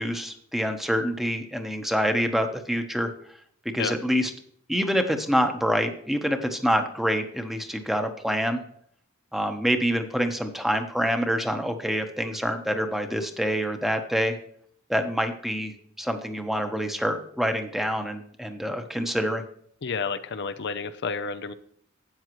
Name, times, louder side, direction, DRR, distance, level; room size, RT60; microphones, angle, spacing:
voice 1, 0.0-3.1 3.7-4.3 4.7-8.6 9.3-14.4 14.9-19.4, equal, ahead, 5 dB, 1.0 m, -26 dB
voice 2, 19.8-21.5, left 5 dB, 55° left, 10 dB, 0.6 m, -30 dB
12.5 x 8.9 x 3.1 m, 0.63 s
head